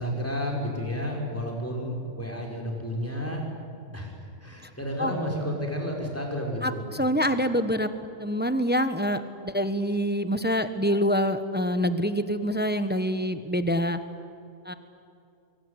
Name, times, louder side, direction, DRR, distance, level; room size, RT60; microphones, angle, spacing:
voice 1, 0.0-3.4 3.9-6.8, equal, 10° left, -1 dB, 5.5 m, -31 dB
voice 2, 6.6-7.9 8.2-14.0 14.6-14.7, equal, 10° right, 10 dB, 1.0 m, -26 dB
24.5 x 23.5 x 9.8 m, 2.5 s
omnidirectional pair, 1.3 m